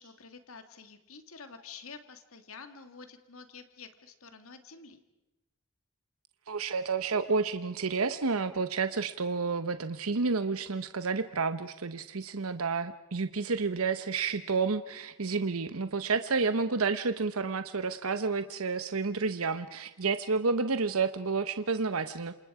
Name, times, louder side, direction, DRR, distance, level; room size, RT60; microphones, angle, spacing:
voice 1, 0.0-5.0, left 5 dB, 80° left, 8 dB, 2.1 m, -49 dB
voice 2, 6.5-22.3, right 4 dB, 85° right, 11 dB, 0.9 m, -30 dB
28.0 x 27.5 x 4.9 m, 0.94 s
head